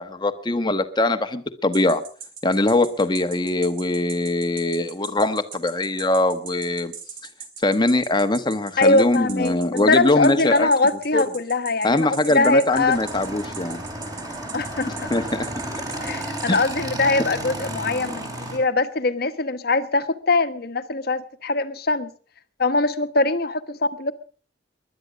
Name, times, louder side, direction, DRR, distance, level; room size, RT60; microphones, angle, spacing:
voice 1, 0.0-2.0 2.4-6.9 7.6-10.7 11.1-11.2 11.8-13.8 15.1-15.5 16.5-16.6 17.2-17.3, left 2 dB, 25° left, 8 dB, 1.2 m, -22 dB
sound 1, 1.7-16.8, right 7 dB, 90° right, 3.5 m, -39 dB
voice 2, 8.8-9.5 9.9-13.0 14.5-15.1 16.0-22.1 22.6-24.1, left 3 dB, 55° left, 11 dB, 1.3 m, -22 dB
Motorcycle / Engine, 12.7-18.6, right 1 dB, 20° right, 4.2 m, -32 dB
20.5 x 12.0 x 5.1 m, 0.43 s
head